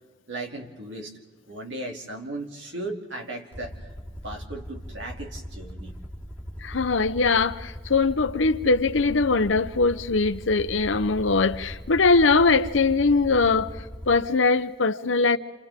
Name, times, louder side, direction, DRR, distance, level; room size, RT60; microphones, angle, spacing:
voice 1, 0.3-1.1 1.5-3.8 4.2-6.0, right 2 dB, 75° right, 2.8 m, -36 dB
Aircraft, 3.5-14.2, equal, 10° right, 4.1 m, -40 dB
voice 2, 6.6-13.7 14.1-15.4, left 3 dB, 85° left, 0.9 m, -21 dB
28.5 x 28.0 x 3.7 m
head